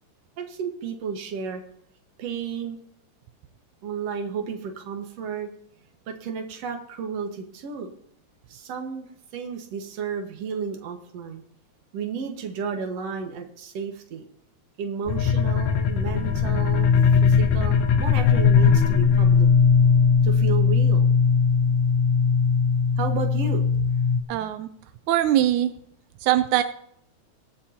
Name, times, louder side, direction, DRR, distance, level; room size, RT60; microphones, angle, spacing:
voice 1, 0.4-1.6 2.2-2.8 3.8-5.5 6.1-7.9 8.5-9.1 9.3-11.4 11.9-14.2 14.8-16.9 17.3-19.5 20.2-21.1 23.0-23.6, right 6 dB, 65° right, 4 dB, 2.5 m, -32 dB
sound 1, 15.1-24.2, left 6 dB, 75° left, 2.1 m, -19 dB
voice 2, 24.3-24.7 25.1-25.7 26.2-26.6, right 12 dB, 85° right, 10 dB, 2.1 m, -21 dB
24.0 x 8.5 x 2.9 m, 0.70 s
omnidirectional pair, 3.3 m